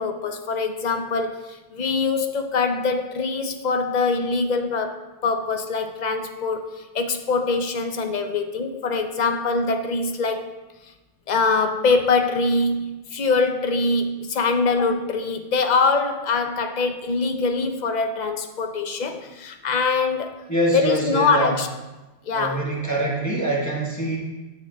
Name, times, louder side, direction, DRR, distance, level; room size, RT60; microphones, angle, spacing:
voice 1, 0.0-10.4 11.3-20.4 20.7-21.7 22.3-22.7, left 4 dB, 50° left, 6 dB, 0.6 m, -23 dB
voice 2, 20.5-21.5 22.3-24.2, right 1 dB, 15° left, -4 dB, 1.2 m, -24 dB
11.5 x 6.6 x 2.3 m, 1.1 s
omnidirectional pair, 1.2 m